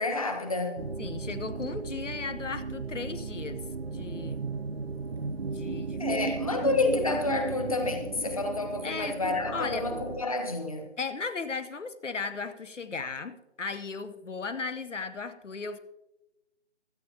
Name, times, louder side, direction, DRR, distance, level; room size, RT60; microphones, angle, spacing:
voice 1, 0.0-0.8 6.0-10.9, left 3 dB, 30° left, 6 dB, 1.2 m, -29 dB
sound 1, 0.8-10.2, right 4 dB, 55° right, 0.6 m, -36 dB
voice 2, 1.0-4.4 5.5-6.5 8.8-9.2 9.5-9.9 11.0-15.8, left 4 dB, 85° left, 11 dB, 1.0 m, -36 dB
16.5 x 13.0 x 2.8 m, 0.99 s
figure-of-eight pair, 170°, 36 cm